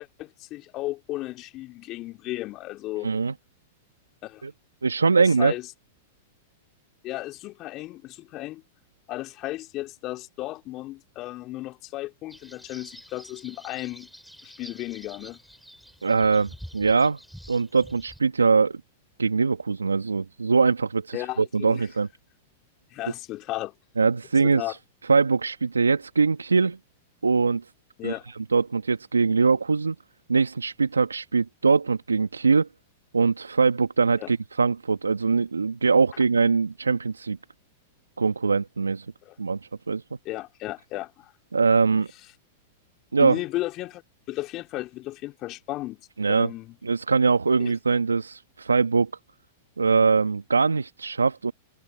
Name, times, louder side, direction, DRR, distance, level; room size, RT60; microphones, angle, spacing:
voice 1, 0.0-3.1 4.2-4.4 5.2-5.7 7.0-8.6 9.1-14.1 14.4-15.4 21.1-21.9 22.9-23.7 24.4-24.7 28.0-28.2 34.2-34.3 39.3-39.4 40.3-41.3 43.2-44.0 44.3-46.0 46.3-46.8 47.6-47.7, left 17 dB, 40° left, 3.8 m, -34 dB
voice 2, 3.0-3.3 4.4-4.5 4.8-5.5 16.0-17.2 17.5-18.8 19.2-22.1 24.0-24.8 25.1-26.8 27.2-27.7 28.0-28.2 28.5-29.9 30.3-32.7 33.1-37.4 38.2-39.1 39.4-39.6 39.9-40.0 41.5-42.1 43.1-43.3 46.2-46.5 46.8-49.1 49.8-51.5, right 4 dB, 90° right, 1.7 m, -22 dB
sound 1, 12.3-18.2, equal, ahead, 8.0 m, -47 dB
hypercardioid pair, 100°, 0 cm